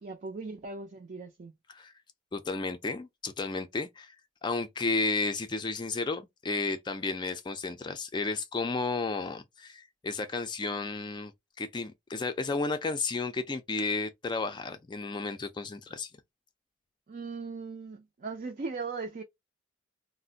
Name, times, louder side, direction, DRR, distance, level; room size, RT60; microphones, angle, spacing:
voice 1, 0.0-1.5 17.1-19.2, right 4 dB, 45° right, 0.4 m, -38 dB
voice 2, 2.3-4.1 4.4-11.3 11.6-16.1, left 3 dB, 25° left, 0.4 m, -32 dB
2.5 x 2.1 x 3.8 m
head